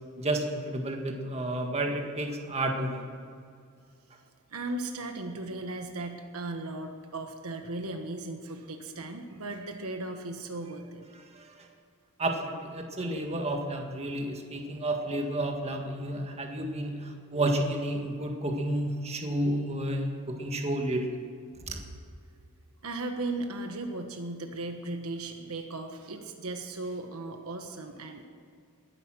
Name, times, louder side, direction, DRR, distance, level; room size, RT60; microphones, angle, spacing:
voice 1, 0.2-3.1 11.4-11.5 12.2-21.1 21.7-21.8, right 1 dB, 30° right, 2 dB, 1.7 m, -31 dB
voice 2, 4.5-11.0 22.8-28.2, right 2 dB, 70° right, 5 dB, 1.4 m, -37 dB
20.0 x 11.0 x 6.3 m, 2.2 s
head